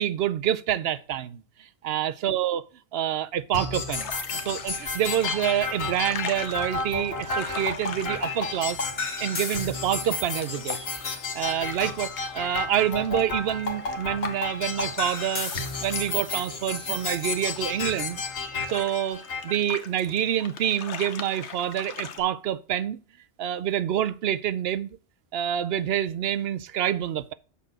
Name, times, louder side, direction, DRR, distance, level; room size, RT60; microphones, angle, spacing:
voice 1, 0.0-1.4 1.8-2.6 2.9-4.1 4.4-8.8 9.2-10.8 11.1-15.5 15.8-18.2 18.7-23.0 23.4-25.0 25.3-27.3, right 10 dB, 70° right, 0.8 m, -27 dB
sound 1, 3.5-19.5, left 3 dB, 65° left, 1.4 m, -32 dB
sound 2, 3.9-22.2, left 6 dB, 90° left, 1.2 m, -42 dB
6.8 x 4.1 x 6.1 m
omnidirectional pair, 1.1 m